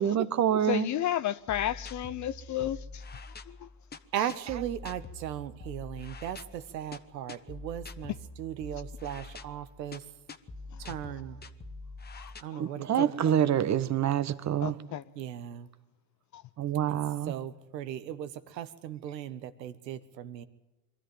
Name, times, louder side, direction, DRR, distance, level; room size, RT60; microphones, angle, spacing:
voice 1, 0.0-0.9 12.6-14.8 16.6-17.3, right 10 dB, 35° right, 1.3 m, -26 dB
voice 2, 0.6-3.0 3.5-3.7 4.2-4.3 12.2-12.6 13.0-13.1 14.6-15.0 16.3-16.4, left 12 dB, 35° left, 0.6 m, -32 dB
sound 1, 1.5-12.4, left 3 dB, 20° left, 1.2 m, -45 dB
voice 3, 4.1-10.0 10.8-11.4 12.4-13.1 15.2-15.7 16.9-17.0 17.3-20.5, right 11 dB, 90° right, 1.5 m, -37 dB
23.0 x 13.5 x 9.2 m
hypercardioid pair, 95°, 49 cm